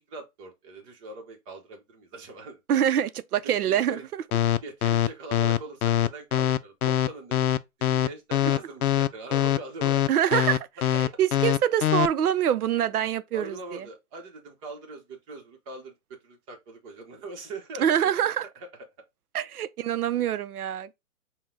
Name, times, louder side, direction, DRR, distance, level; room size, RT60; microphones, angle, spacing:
voice 1, 0.1-2.6 3.4-4.0 4.6-7.5 7.8-10.0 13.3-17.9 18.6-18.7, right 3 dB, 20° right, 0.9 m, -41 dB
voice 2, 2.7-4.0 8.5-8.6 10.1-10.6 10.9-13.8 17.8-18.5 19.3-20.9, right 10 dB, 80° right, 0.6 m, -25 dB
sound 1, 4.3-12.1, left 11 dB, 75° left, 0.6 m, -23 dB
5.5 x 2.3 x 3.7 m
hypercardioid pair, 150°, 44 cm